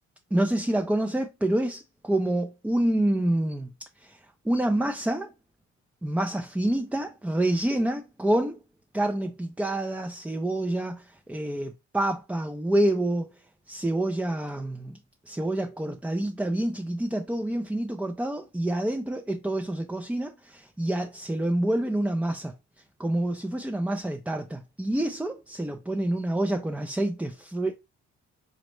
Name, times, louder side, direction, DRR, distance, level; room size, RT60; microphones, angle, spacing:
voice 1, 0.3-3.7 4.0-4.2 4.4-5.3 6.0-8.6 8.9-13.3 13.7-15.0 15.3-22.5 23.0-27.7, right 1 dB, 5° right, 0.3 m, -27 dB
5.1 x 2.0 x 3.0 m
cardioid pair, 90°, 30 cm